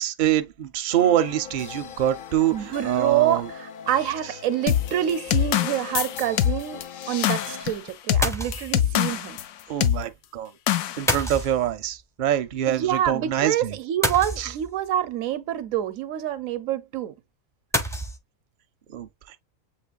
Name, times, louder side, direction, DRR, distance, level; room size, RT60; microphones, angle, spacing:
voice 1, 0.0-3.5 9.7-10.5 11.0-13.7 14.4-14.5 18.9-19.1, right 11 dB, 55° right, 0.5 m, -25 dB
sound 1, 0.9-7.6, left 7 dB, 65° left, 0.5 m, -39 dB
voice 2, 2.5-9.4 12.7-17.1, right 11 dB, 80° right, 1.0 m, -27 dB
sound 2, 4.7-9.5 9.8-10.0 10.7-11.3, left 11 dB, 90° left, 1.0 m, -24 dB
sound 3, 5.3-5.5 8.2-8.9 11.1-12.0 14.0-14.9 17.7-18.2, equal, 5° left, 0.4 m, -28 dB
7.5 x 2.9 x 2.3 m
omnidirectional pair, 1.4 m